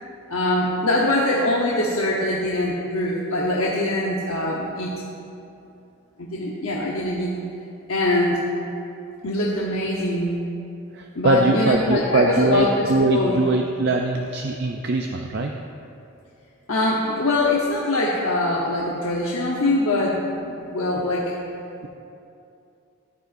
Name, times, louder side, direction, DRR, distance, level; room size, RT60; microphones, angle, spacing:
voice 1, 0.3-5.0 6.2-7.4 7.9-8.5 9.2-10.5 11.2-13.3 16.7-21.3, left 1 dB, 70° left, -4 dB, 0.9 m, -23 dB
voice 2, 10.9-15.5, right 2 dB, 45° right, 2 dB, 0.4 m, -21 dB
14.0 x 10.5 x 2.6 m, 2.7 s
head